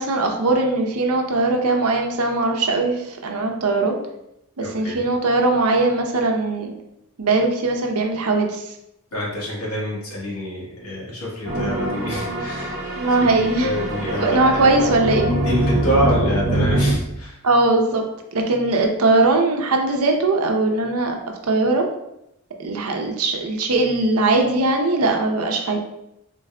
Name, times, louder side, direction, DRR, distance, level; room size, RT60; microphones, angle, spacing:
voice 1, 0.0-4.0 4.6-6.7 7.2-8.6 13.0-13.7 14.2-15.3 17.4-18.0 18.3-21.2 21.5-21.9 22.6-25.8, right 2 dB, 85° right, 3 dB, 0.6 m, -20 dB
voice 2, 4.6-5.0 9.1-12.8 13.2-13.3 13.6-14.8 15.3-17.4, equal, 80° left, -4 dB, 1.4 m, -26 dB
sound 1, 11.4-17.0, right 1 dB, 50° right, 0.8 m, -24 dB
3.8 x 2.2 x 3.6 m, 0.83 s
head